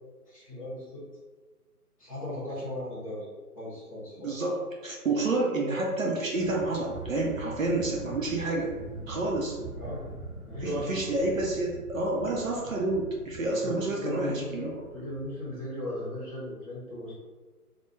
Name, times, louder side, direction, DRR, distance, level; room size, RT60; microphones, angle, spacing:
voice 1, 0.3-1.0 2.0-3.3 3.5-4.4 9.8-10.1 10.5-11.0 13.6-17.1, left 1 dB, 20° left, -10 dB, 0.7 m, -36 dB
voice 2, 4.2-8.7 9.1-9.6 10.6-14.7, right 2 dB, 60° right, -1 dB, 0.6 m, -29 dB
sound 1, 6.3-15.3, right 2 dB, 15° right, 1.1 m, -43 dB
2.2 x 2.1 x 3.1 m, 1.3 s
figure-of-eight pair, 155°, 46 cm